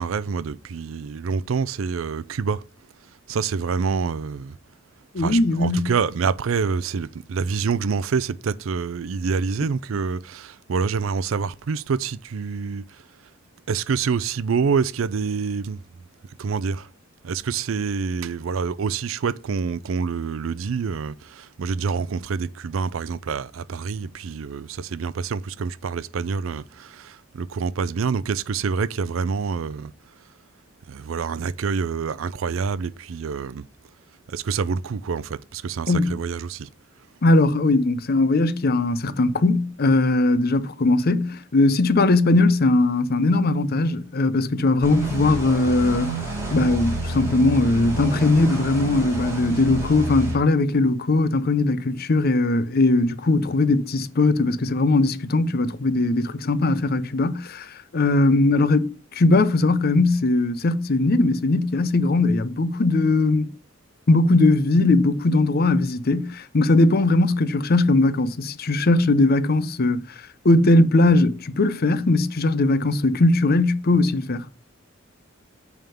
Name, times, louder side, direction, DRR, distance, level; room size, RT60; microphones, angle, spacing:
voice 1, 0.0-2.6 3.3-4.6 5.2-13.0 13.7-15.8 16.4-16.9 17.2-29.9 30.9-33.6 34.3-36.7, right 5 dB, 80° right, 0.4 m, -26 dB
voice 2, 5.1-5.9 35.9-36.2 37.2-63.5 64.1-74.5, left 2 dB, 50° left, 0.6 m, -20 dB
sound 1, 44.8-50.3, right 1 dB, 15° right, 3.6 m, -29 dB
9.1 x 3.6 x 6.9 m
head